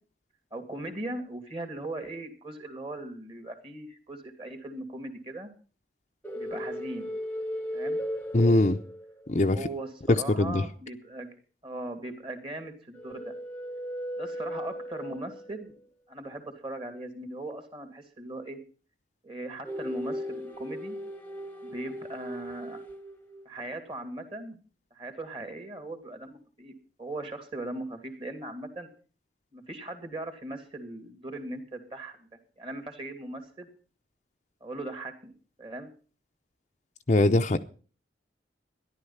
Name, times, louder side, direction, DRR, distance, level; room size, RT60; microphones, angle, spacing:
voice 1, 0.5-5.5 6.3-7.1 7.7-8.0 9.5-11.3 11.6-13.3 14.2-15.7 16.1-18.6 19.2-21.0 21.6-22.8 23.4-24.6 24.9-26.7 27.0-28.9 29.5-32.3 32.6-33.7 34.6-35.3 35.6-35.9, right 2 dB, 30° right, 2.7 m, -39 dB
sound 1, 6.2-9.4 12.9-15.5 19.6-23.5, equal, 10° left, 1.1 m, -36 dB
voice 2, 8.3-8.8 9.3-9.6 10.1-10.7 37.1-37.6, left 2 dB, 40° left, 0.7 m, -22 dB
13.5 x 11.5 x 5.7 m
head